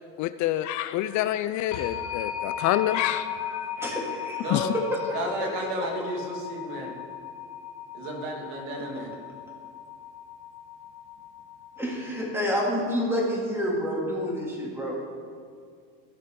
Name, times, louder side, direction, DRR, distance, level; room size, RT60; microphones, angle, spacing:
voice 1, 0.2-3.7 4.5-4.7, left 13 dB, 55° left, 13 dB, 0.4 m, -27 dB
sound 1, 1.7-12.3, left 8 dB, 90° left, 1.3 m, -37 dB
voice 2, 3.8-4.5 5.1-5.5 5.8-5.9 11.8-14.9, equal, 5° right, -4 dB, 2.7 m, -29 dB
voice 3, 4.4-4.7 5.1-6.9 7.9-9.2, right 1 dB, 75° right, 0 dB, 2.4 m, -33 dB
16.0 x 6.6 x 3.8 m, 2.1 s
cardioid pair, 125°, 35 cm